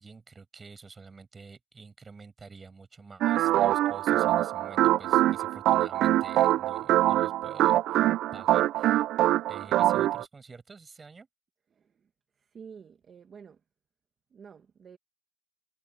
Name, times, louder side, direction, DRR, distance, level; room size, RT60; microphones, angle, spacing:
voice 1, 0.0-8.1 8.3-9.0 9.5-11.3, right 4 dB, 25° right, 6.9 m, -49 dB
sound 1, 3.2-10.2, right 14 dB, 85° right, 0.3 m, -24 dB
voice 2, 11.7-12.1 12.4-13.6 14.3-15.0, right 6 dB, 40° right, 1.8 m, -50 dB
cardioid pair, 140°, 0 cm